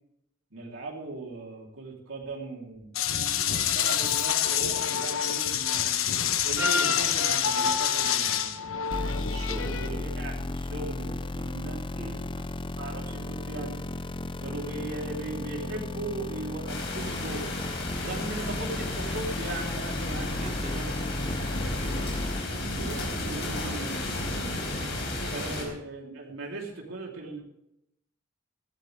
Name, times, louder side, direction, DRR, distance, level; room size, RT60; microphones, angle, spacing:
voice 1, 0.5-2.9 3.7-6.1 6.4-8.7 9.6-11.8 12.8-13.8 14.4-17.5 18.0-20.3 20.7-21.0 21.6-22.2 22.8-24.7 25.1-27.4, right 2 dB, 75° right, -1 dB, 3.8 m, -38 dB
sound 1, 2.9-9.9, left 8 dB, 85° left, 1.1 m, -27 dB
sound 2, 8.9-22.4, left 2 dB, 25° left, 0.5 m, -34 dB
voice 2, 9.2-10.0 11.9-12.4 20.4-20.8 25.4-25.6, right 1 dB, 35° right, 1 dB, 2.8 m, -40 dB
sound 3, 16.7-25.6, left 1 dB, 60° left, 5.0 m, -33 dB
18.5 x 14.5 x 3.6 m, 0.83 s
head